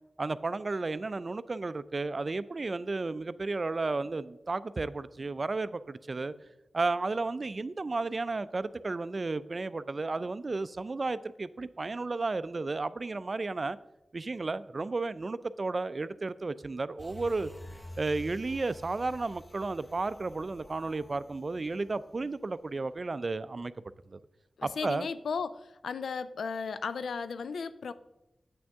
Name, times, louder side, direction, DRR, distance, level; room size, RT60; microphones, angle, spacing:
voice 1, 0.2-6.3 6.7-13.8 14.1-17.5 18.0-23.7 24.1-24.2 24.6-25.1, right 3 dB, 50° right, 0.3 m, -33 dB
sound 1, 17.0-22.6 23.0-23.1, left 1 dB, 20° left, 0.8 m, -49 dB
voice 2, 24.6-27.9, left 5 dB, 90° left, 0.3 m, -35 dB
8.4 x 6.2 x 3.5 m
cardioid pair, 45°, 0 cm